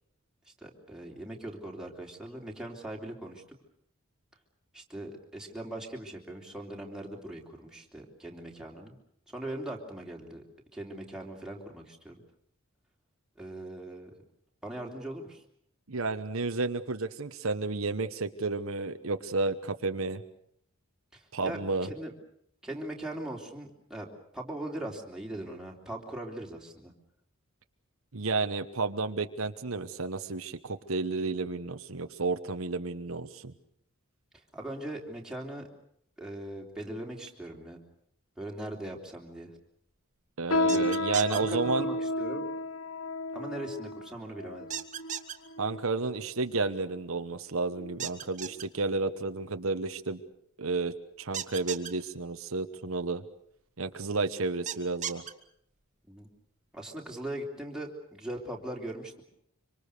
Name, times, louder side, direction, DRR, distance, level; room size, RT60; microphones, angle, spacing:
voice 1, 0.6-3.4 4.7-8.9 9.3-10.4 10.7-12.1 13.4-14.1 14.6-15.4 21.1-22.1 22.6-24.1 24.3-26.9 34.5-35.7 36.2-37.8 38.4-39.5 40.6-40.8 41.3-42.4 43.3-44.7 56.1-56.3 56.7-59.2, right 1 dB, 5° right, -1 dB, 3.4 m, -40 dB
voice 2, 15.9-20.2 21.3-21.9 28.1-33.5 40.4-41.9 45.6-50.2 50.6-53.2 53.8-55.2, right 3 dB, 75° right, 8 dB, 1.1 m, -31 dB
sound 1, 40.5-46.2 46.8-47.0 47.7-48.0 48.4-48.6 49.3-49.4, left 1 dB, 75° left, 1.5 m, -32 dB
sound 2, 40.7-41.4 44.7-45.3 48.0-48.6 51.3-51.9 54.7-55.3, right 9 dB, 35° right, 1.6 m, -35 dB
25.5 x 25.5 x 6.7 m, 0.68 s
head